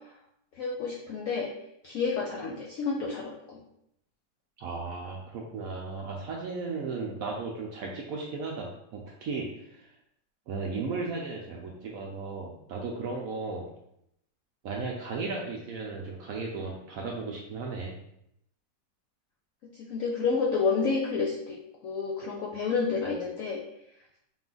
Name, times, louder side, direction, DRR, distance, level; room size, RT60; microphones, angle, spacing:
voice 1, 0.6-1.5 1.8-3.6 19.6-23.6, left 5 dB, 75° left, -2 dB, 0.7 m, -30 dB
voice 2, 4.6-9.9 10.5-13.7 14.6-17.9, right 4 dB, 70° right, -1 dB, 0.8 m, -35 dB
4.0 x 2.4 x 3.8 m, 0.78 s
omnidirectional pair, 1.9 m